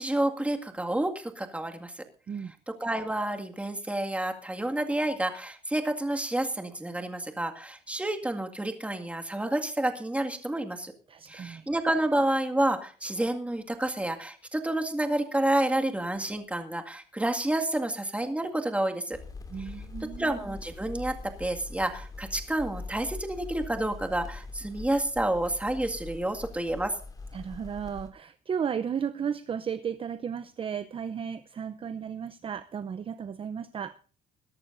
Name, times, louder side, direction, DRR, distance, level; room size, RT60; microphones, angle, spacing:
voice 1, 0.0-2.0 2.8-10.9 11.3-19.2 19.6-19.7 20.0-26.9, right 1 dB, 5° right, 4 dB, 2.0 m, -29 dB
voice 2, 11.1-11.7 19.5-20.3 27.3-34.0, right 7 dB, 30° right, 13 dB, 0.6 m, -34 dB
sound 1, 19.1-28.1, left 3 dB, 20° left, 2.5 m, -43 dB
21.5 x 11.5 x 2.6 m, 0.40 s
cardioid pair, 110°, 17 cm